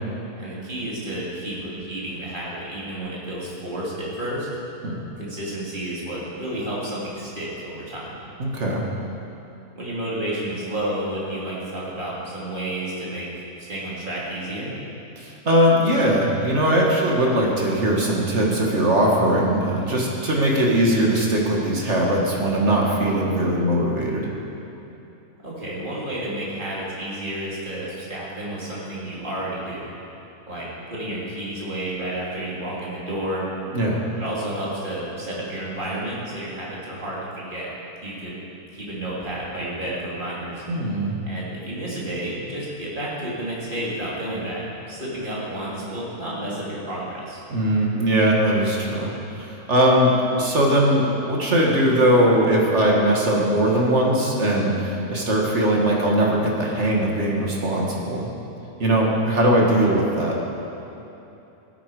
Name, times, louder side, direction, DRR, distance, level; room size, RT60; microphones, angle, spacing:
voice 1, 0.4-4.5 5.2-8.2 9.8-13.3 13.6-14.8 25.4-29.9 30.5-33.5 34.2-37.7 38.0-38.4 38.7-40.6 41.3-47.4, right 1 dB, 35° right, -7 dB, 3.0 m, -31 dB
voice 2, 8.4-8.8 15.2-24.3 33.7-34.1 40.7-41.2 47.5-58.3 58.8-60.4, right 1 dB, 50° right, -2 dB, 2.0 m, -20 dB
16.5 x 8.8 x 4.9 m, 2.9 s
omnidirectional pair, 1.6 m